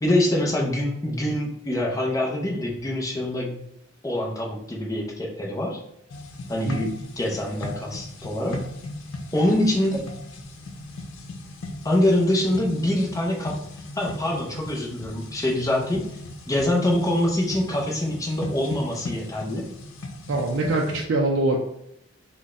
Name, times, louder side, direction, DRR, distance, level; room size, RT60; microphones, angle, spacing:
voice 1, 0.0-3.5 4.0-5.8 6.5-8.6 9.3-10.0 11.8-13.6 14.0-16.0 16.5-19.7, left 1 dB, 15° left, -1 dB, 0.6 m, -24 dB
sound 1, 6.1-21.0, left 2 dB, 80° left, 0.5 m, -38 dB
voice 2, 20.3-21.6, right 2 dB, 60° right, 0 dB, 0.4 m, -23 dB
4.0 x 2.2 x 3.6 m, 0.76 s
head